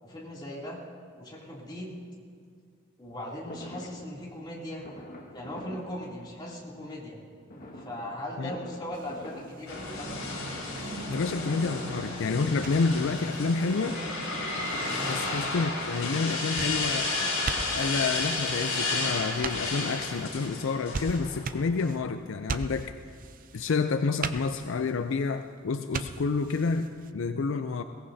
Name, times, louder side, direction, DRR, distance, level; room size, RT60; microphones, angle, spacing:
voice 1, 0.0-0.8 1.2-1.9 3.0-4.9 5.3-7.2 7.8-10.1 14.9-15.1, equal, 20° left, -5 dB, 2.8 m, -39 dB
Fireworks, 3.5-6.7 7.5-10.4 10.6-11.3 12.2-13.3 14.4-17.1 17.9-18.0 18.3-18.4 18.7-19.9 20.3-20.4 20.5-20.6, left 1 dB, 45° left, 1.7 m, -47 dB
sound 1, 8.9-27.1, right 4 dB, 40° right, 0.5 m, -42 dB
sound 2, 9.7-21.7, left 2 dB, 80° left, 4.6 m, -32 dB
voice 2, 11.1-14.0 15.1-17.1 17.7-22.9 23.5-27.8, left 4 dB, 65° left, 9 dB, 0.4 m, -29 dB
21.5 x 18.0 x 2.7 m, 2.2 s
head